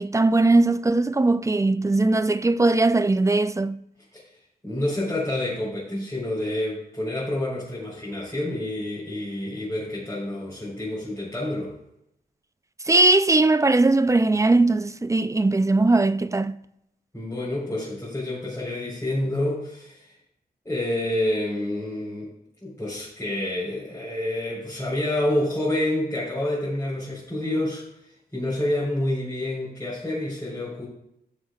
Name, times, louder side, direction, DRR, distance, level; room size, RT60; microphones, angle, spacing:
voice 1, 0.0-3.8 12.9-16.6, right 2 dB, 20° right, 0.4 m, -20 dB
voice 2, 4.6-11.7 17.1-20.1 20.6-22.3 22.6-27.8 28.3-30.9, left 1 dB, 15° left, 3.9 m, -28 dB
17.5 x 6.3 x 2.4 m
wide cardioid pair, 90°, 17 cm